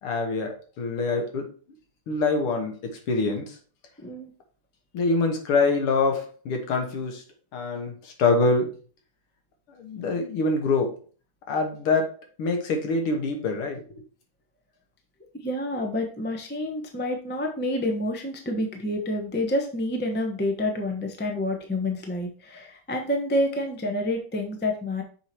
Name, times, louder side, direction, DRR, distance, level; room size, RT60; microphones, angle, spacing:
voice 1, 0.0-1.5 2.1-3.6 4.9-7.2 7.5-8.7 9.7-10.9 11.5-12.1 12.4-14.0, left 3 dB, 80° left, 4 dB, 2.3 m, -25 dB
voice 2, 4.0-4.3 15.3-25.0, left 1 dB, 10° left, 3 dB, 0.5 m, -28 dB
6.6 x 4.8 x 4.3 m, 0.40 s
omnidirectional pair, 2.4 m